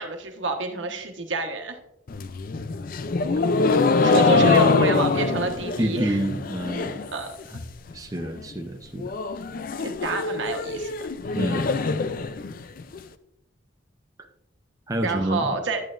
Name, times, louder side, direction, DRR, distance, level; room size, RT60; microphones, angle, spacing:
voice 1, 0.0-1.8 4.0-6.1 7.1-7.3 9.8-11.1 15.0-15.8, right 2 dB, 85° right, 4 dB, 1.3 m, -28 dB
sound 1, 2.1-7.1 7.4-7.9 8.2-8.3 8.6-8.7 9.0-13.0, left 4 dB, 50° left, 0.4 m, -24 dB
voice 2, 5.8-7.1 7.5-7.6 7.9-9.1 11.3-11.8 14.9-15.5, right 1 dB, 20° right, 3 dB, 0.6 m, -28 dB
10.5 x 8.9 x 2.5 m, 0.81 s
head